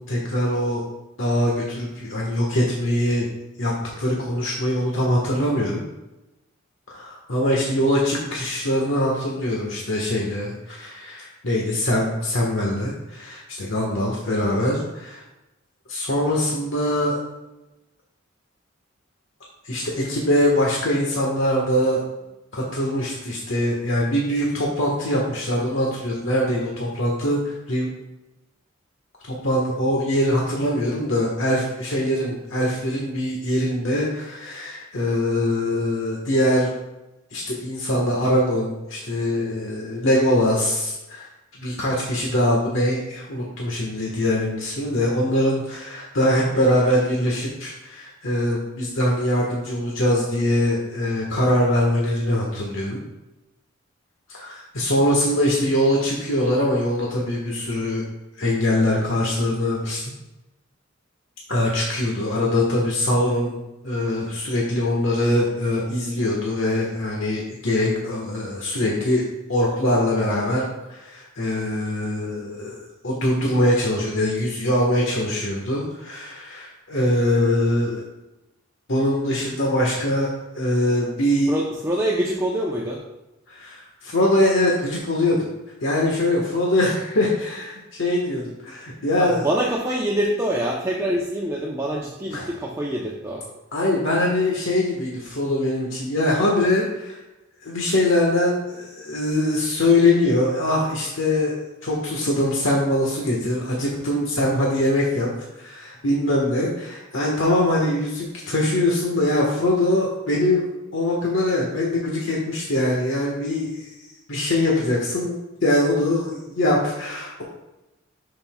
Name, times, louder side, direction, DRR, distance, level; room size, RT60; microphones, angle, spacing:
voice 1, 0.1-0.8 1.2-3.3 3.6-5.8 6.9-15.2 15.9-17.2 19.6-22.0 22.5-27.9 29.4-36.7 37.3-41.3 41.6-53.0 54.3-58.0 58.4-60.1 61.5-63.6 63.8-69.2 69.5-78.0 78.9-81.5 83.5-85.5 85.8-89.5 92.3-92.5 93.7-97.2 97.6-105.3 105.6-110.6 110.9-113.9 114.3-117.4, left 1 dB, 75° left, -3 dB, 1.4 m, -22 dB
voice 2, 81.5-83.0 89.2-93.4, right 1 dB, 15° right, -3 dB, 0.7 m, -25 dB
12.0 x 5.6 x 2.3 m, 0.97 s
head